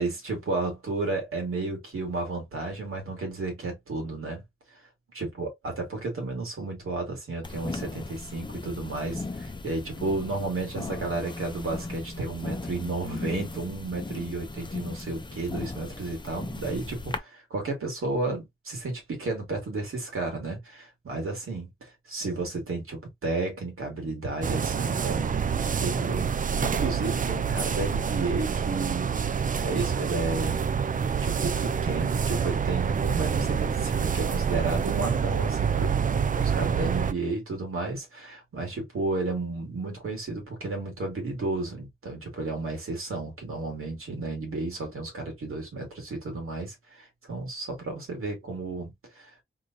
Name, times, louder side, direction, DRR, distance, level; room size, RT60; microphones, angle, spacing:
voice 1, 0.0-4.4 5.2-25.4 25.8-29.4 29.6-30.6 31.0-49.3, right 3 dB, 90° right, 2.1 m, -32 dB
sound 1, 7.4-17.2, left 3 dB, 20° left, 0.5 m, -37 dB
sound 2, 24.4-37.1, right 7 dB, 40° right, 0.4 m, -27 dB
3.8 x 3.1 x 2.6 m
wide cardioid pair, 120°, 21 cm